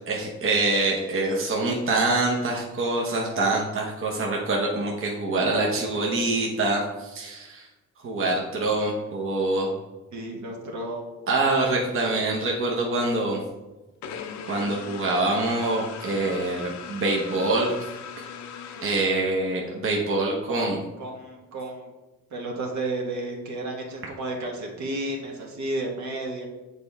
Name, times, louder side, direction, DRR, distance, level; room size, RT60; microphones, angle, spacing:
voice 1, 0.0-7.7 8.0-9.7 11.3-13.4 14.5-17.7 18.8-20.8, right 2 dB, 45° right, -2 dB, 1.0 m, -25 dB
voice 2, 10.1-11.3 20.5-20.7 21.0-21.9 22.3-26.5, right 2 dB, 65° right, 0 dB, 1.4 m, -32 dB
sound 1, 14.0-19.6, left 7 dB, 65° left, 0.6 m, -39 dB
6.7 x 4.3 x 3.4 m, 1.1 s
cardioid pair, 90°, 30 cm